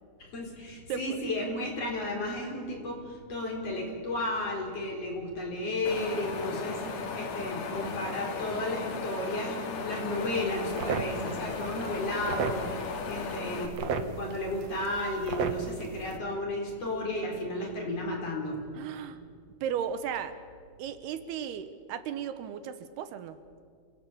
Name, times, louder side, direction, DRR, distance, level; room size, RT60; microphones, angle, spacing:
voice 1, 0.2-18.6, left 1 dB, 40° left, 0 dB, 5.2 m, -33 dB
voice 2, 0.9-1.3 18.8-19.2 19.6-20.4 20.8-23.4, right 8 dB, 80° right, 11 dB, 3.1 m, -35 dB
Wind, 5.9-13.7, left 5 dB, 85° left, 4.1 m, -36 dB
sound 1, 10.2-16.2, right 5 dB, 60° right, 1.9 m, -36 dB
28.5 x 18.0 x 8.5 m, 2.1 s
omnidirectional pair, 4.5 m